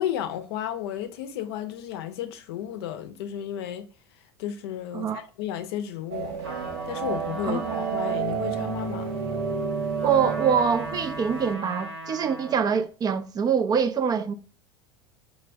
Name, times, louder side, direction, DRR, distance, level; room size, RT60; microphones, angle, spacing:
voice 1, 0.0-3.9 4.4-6.4 6.9-9.1, left 11 dB, 65° left, 0.5 m, -33 dB
sound 1, 6.1-11.5, right 6 dB, 65° right, 0.7 m, -30 dB
Trumpet, 6.4-12.7, right 1 dB, 85° right, 1.5 m, -39 dB
voice 2, 10.0-14.3, right 7 dB, 30° right, 0.4 m, -24 dB
5.0 x 2.2 x 2.5 m
hypercardioid pair, 85°, 14 cm